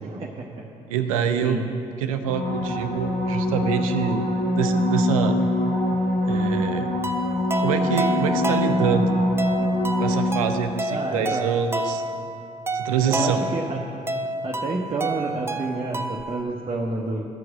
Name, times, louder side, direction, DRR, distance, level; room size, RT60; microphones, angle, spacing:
voice 1, 0.0-0.5 1.4-1.6 10.9-11.5 13.0-13.8 14.4-17.3, right 3 dB, 30° right, -1 dB, 0.9 m, -29 dB
voice 2, 0.9-1.6 2.0-4.2 4.5-5.4 6.3-6.9 7.6-9.1 10.0-12.0 12.7-13.4, right 7 dB, 80° right, 8 dB, 0.5 m, -25 dB
sound 1, 2.2-10.9 16.2-16.3, left 1 dB, 55° left, 2.0 m, -24 dB
sound 2, 7.0-16.4, right 1 dB, 15° right, 0.5 m, -29 dB
12.5 x 4.7 x 6.3 m, 2.7 s
figure-of-eight pair, 45°, 18 cm